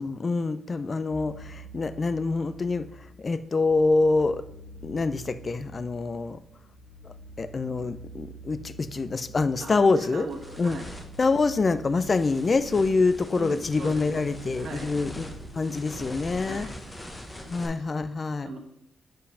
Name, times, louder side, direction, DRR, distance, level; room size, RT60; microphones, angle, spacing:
voice 1, 0.0-4.4 4.8-6.4 7.4-10.3 10.6-10.8 11.2-16.7 17.5-18.5, left 3 dB, 35° left, 12 dB, 0.4 m, -26 dB
sound 1, 1.1-16.3, right 1 dB, 60° left, 1.5 m, -47 dB
sound 2, 9.5-17.7, left 1 dB, 15° left, 1.0 m, -44 dB
voice 2, 9.6-10.9 13.4-14.9 16.4-16.7 17.4-17.9 18.4-18.6, right 3 dB, 65° right, 2 dB, 1.3 m, -40 dB
sound 3, 12.5-16.9, right 2 dB, 25° right, 0.8 m, -49 dB
5.1 x 4.6 x 5.6 m, 0.79 s
cardioid pair, 95°, 0 cm